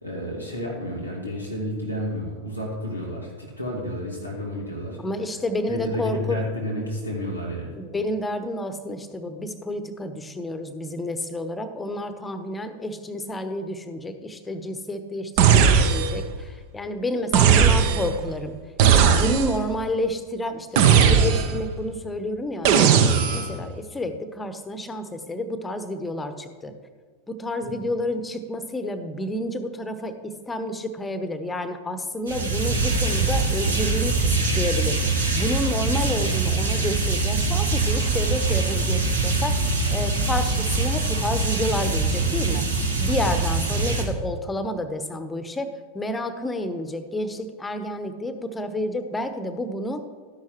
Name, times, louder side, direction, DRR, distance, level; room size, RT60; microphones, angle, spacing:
voice 1, 0.0-5.0 5.7-7.7 27.6-27.7, equal, 90° right, -3 dB, 1.9 m, -31 dB
voice 2, 5.0-6.4 7.8-18.6 18.9-26.7 27.3-34.3 34.6-35.0 35.3-42.7 43.0-50.0, left 1 dB, 10° left, 9 dB, 0.9 m, -30 dB
sound 1, 15.4-16.3 17.3-18.2 18.8-19.7 20.8-21.7 22.6-23.6, right 7 dB, 45° right, 0.8 m, -17 dB
sound 2, 32.3-44.0, right 3 dB, 70° right, 1.6 m, -23 dB
13.0 x 10.5 x 3.0 m, 1.5 s
figure-of-eight pair, 90°, 0 cm